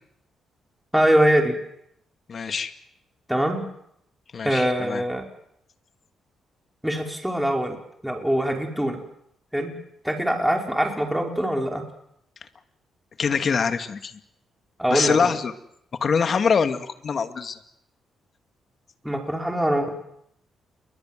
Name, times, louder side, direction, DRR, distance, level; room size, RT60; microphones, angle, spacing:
voice 1, 0.9-1.6 3.3-3.7 4.4-5.2 6.8-7.8 8.0-9.0 9.5-9.8 10.0-11.8 14.8-15.4 19.0-19.9, right 1 dB, 5° right, 2 dB, 5.7 m, -23 dB
voice 2, 2.3-2.7 4.3-5.0 13.2-14.1 14.9-15.5 16.0-17.6, left 6 dB, 50° left, 8 dB, 2.5 m, -24 dB
29.5 x 23.0 x 7.8 m, 0.74 s
cardioid pair, 80°, 0 cm